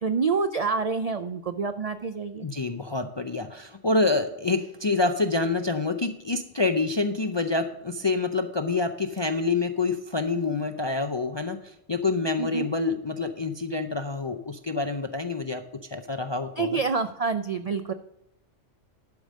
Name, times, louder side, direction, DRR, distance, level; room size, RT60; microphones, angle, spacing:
voice 1, 0.0-2.5 12.4-12.7 16.6-17.9, right 5 dB, 75° right, 10 dB, 0.3 m, -27 dB
voice 2, 2.4-15.6 15.9-16.8, left 3 dB, 45° left, 7 dB, 0.3 m, -27 dB
11.5 x 5.1 x 6.3 m, 0.84 s
omnidirectional pair, 1.3 m